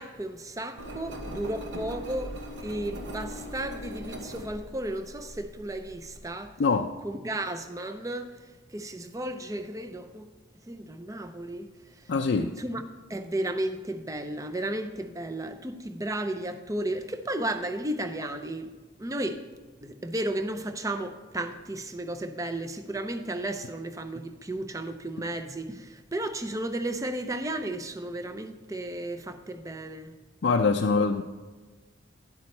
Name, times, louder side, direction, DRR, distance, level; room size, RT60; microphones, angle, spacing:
voice 1, 0.0-2.3 2.6-6.5 7.0-8.4 8.7-10.2 10.7-11.7 12.0-12.1 12.6-12.8 13.1-18.7 19.0-19.4 19.8-30.1, right 1 dB, 15° right, 8 dB, 0.5 m, -34 dB
Engine, 0.8-6.3, equal, 70° right, 1.1 m, -40 dB
voice 2, 12.1-12.5 30.4-31.2, left 4 dB, 65° left, 4 dB, 0.4 m, -23 dB
10.5 x 8.4 x 3.2 m, 1.3 s
head